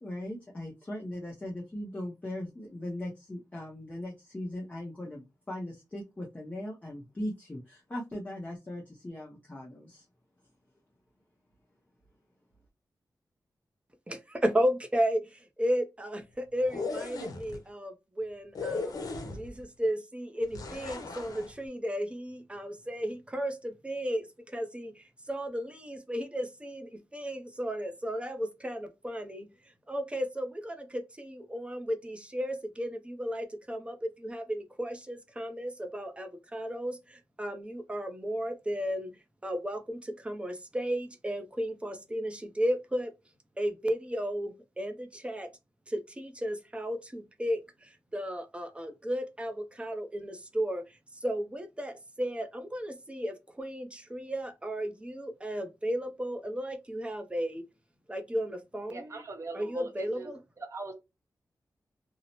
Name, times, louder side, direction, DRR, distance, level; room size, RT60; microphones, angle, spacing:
voice 1, 0.0-10.0, left 1 dB, 20° left, 0.7 m, -39 dB
voice 2, 14.1-18.9 19.3-39.1 39.4-43.1 43.6-45.5 45.9-57.6 58.1-59.2 59.5-60.4, equal, 15° right, 0.5 m, -34 dB
sound 1, 16.6-17.6 18.5-19.6 20.5-21.5, left 3 dB, 75° left, 0.6 m, -37 dB
voice 3, 58.9-60.3 60.6-60.9, right 3 dB, 45° right, 0.8 m, -41 dB
2.7 x 2.0 x 2.8 m
wide cardioid pair, 110°, 7 cm